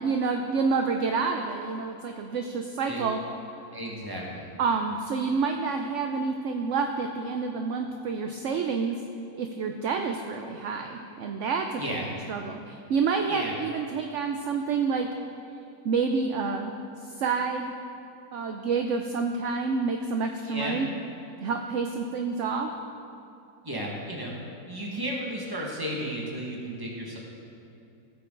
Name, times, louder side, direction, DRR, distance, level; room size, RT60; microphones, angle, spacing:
voice 1, 0.0-3.2 4.6-9.0 9.3-12.0 12.3-15.1 15.8-17.7 18.3-20.9 21.4-22.7, right 5 dB, 65° right, 4 dB, 0.8 m, -28 dB
voice 2, 3.7-4.5 11.8-12.1 13.3-13.5 20.5-20.8 23.6-24.3 24.7-27.2, right 1 dB, 15° right, -3 dB, 1.5 m, -33 dB
16.0 x 6.9 x 3.8 m, 2.8 s
omnidirectional pair, 1.6 m